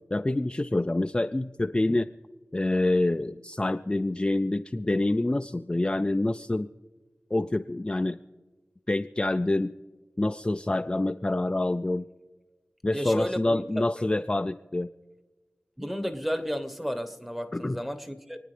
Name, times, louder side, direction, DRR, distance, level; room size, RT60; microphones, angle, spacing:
voice 1, 0.1-2.1 2.5-6.7 7.3-8.2 8.9-9.7 10.2-12.0 12.8-14.9 17.5-17.8, left 2 dB, 25° left, 0.4 m, -26 dB
voice 2, 12.9-13.8 15.8-18.4, equal, 5° right, 1.1 m, -32 dB
28.0 x 9.4 x 3.3 m
wide cardioid pair, 45°, 4 cm